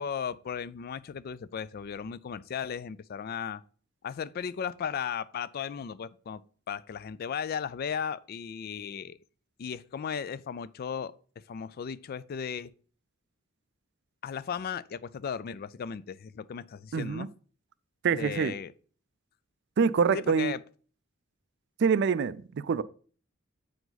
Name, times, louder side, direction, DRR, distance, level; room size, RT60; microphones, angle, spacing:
voice 1, 0.0-3.6 4.0-6.4 6.7-9.2 9.6-11.1 11.5-12.7 14.2-17.3 18.1-18.7 20.1-20.6, left 7 dB, 50° left, 0.3 m, -36 dB
voice 2, 16.9-17.3 18.0-18.5 19.8-20.5 21.8-22.8, right 6 dB, 60° right, 0.4 m, -25 dB
7.7 x 4.8 x 4.0 m
head